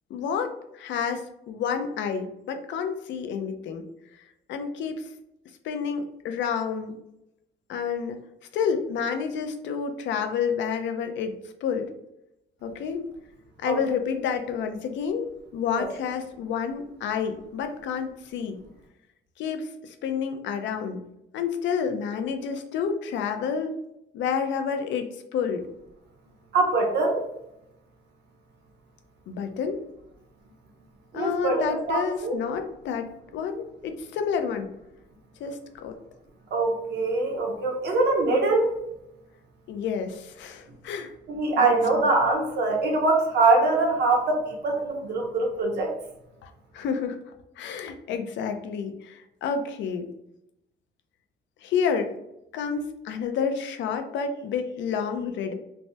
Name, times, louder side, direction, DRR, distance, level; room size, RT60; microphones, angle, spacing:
voice 1, 0.1-3.8 4.5-5.1 5.6-6.9 7.7-8.2 8.5-11.3 11.6-11.9 12.6-13.1 13.6-18.6 19.4-21.0 21.3-23.8 24.1-25.7 29.3-29.8 31.1-34.7 35.4-35.9 39.7-41.1 41.6-42.1 46.4-47.2 47.6-50.1 51.6-52.1 52.5-55.5, left 6 dB, 85° left, 7 dB, 0.5 m, -29 dB
voice 2, 26.5-27.2 31.1-32.4 36.5-38.7 41.3-45.9, right 3 dB, 65° right, 0 dB, 0.9 m, -23 dB
3.3 x 2.1 x 2.7 m, 0.84 s
cardioid pair, 135°, 19 cm